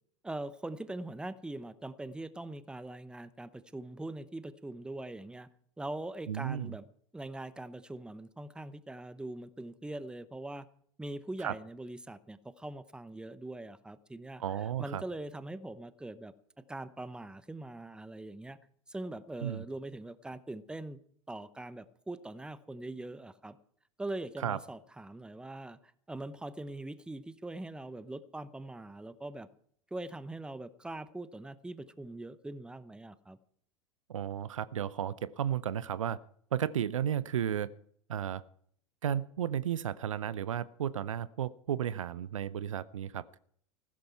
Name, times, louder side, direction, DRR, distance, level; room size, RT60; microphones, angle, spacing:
voice 1, 0.2-5.5 5.8-6.8 7.1-10.7 11.0-14.4 14.8-16.3 16.7-18.6 18.9-21.0 21.3-23.6 24.0-25.8 26.1-29.5 29.9-33.4, right 2 dB, 5° right, 16 dB, 0.8 m, -42 dB
voice 2, 6.3-6.8 11.4-11.5 14.4-15.0 19.4-19.7 24.4-24.6 34.1-36.2 36.5-37.7 38.1-38.4 39.0-43.4, right 9 dB, 70° right, 19 dB, 0.6 m, -33 dB
15.5 x 13.0 x 4.6 m, 0.62 s
figure-of-eight pair, 80°, 17 cm